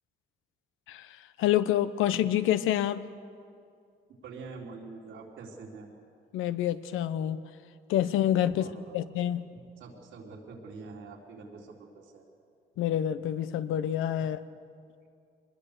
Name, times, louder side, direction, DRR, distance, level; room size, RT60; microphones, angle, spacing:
voice 1, 0.9-3.1 6.3-7.4 7.9-8.7 8.9-9.5 12.8-14.4, left 11 dB, 90° left, 13 dB, 0.9 m, -27 dB
voice 2, 4.2-5.9 8.5-9.0 9.5-12.2, right 4 dB, 85° right, -1 dB, 3.7 m, -45 dB
24.0 x 20.5 x 6.8 m, 2.4 s
cardioid pair, 90°, 20 cm